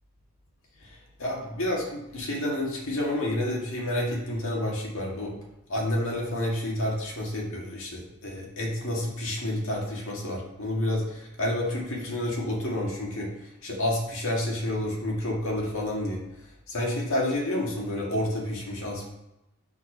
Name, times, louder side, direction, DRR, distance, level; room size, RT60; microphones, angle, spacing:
voice 1, 0.8-5.3 5.7-16.2 16.7-19.1, left 1 dB, 60° left, -2 dB, 2.0 m, -29 dB
6.0 x 4.3 x 5.4 m, 0.89 s
head